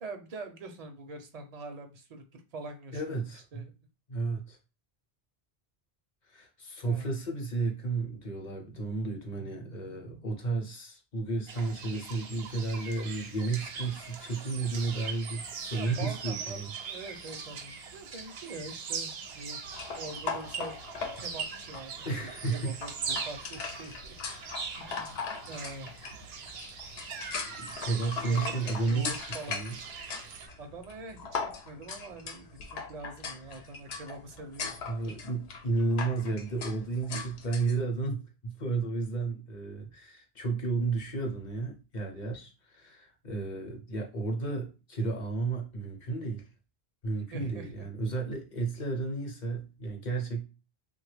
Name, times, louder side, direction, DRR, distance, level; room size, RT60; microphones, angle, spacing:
voice 1, 0.0-3.2 3.5-3.7 6.9-7.2 15.7-19.6 19.9-20.7 21.2-22.1 22.5-24.2 24.8-25.2 25.5-25.9 28.1-28.6 28.8-29.7 30.6-31.4 31.6-34.8 35.0-35.1 47.3-47.9, right 2 dB, 50° right, 0.5 m, -44 dB
voice 2, 2.9-3.7 4.1-4.6 6.3-16.7 22.0-22.8 23.1-23.4 27.4-29.2 29.5-29.8 34.8-46.4 47.0-50.5, right 3 dB, 50° left, 0.8 m, -33 dB
sound 1, 11.5-30.5, right 5 dB, 80° right, 0.9 m, -41 dB
Dog eating from tin bowl, 19.7-37.8, left 5 dB, 80° left, 0.9 m, -40 dB
3.1 x 2.2 x 3.2 m
omnidirectional pair, 1.0 m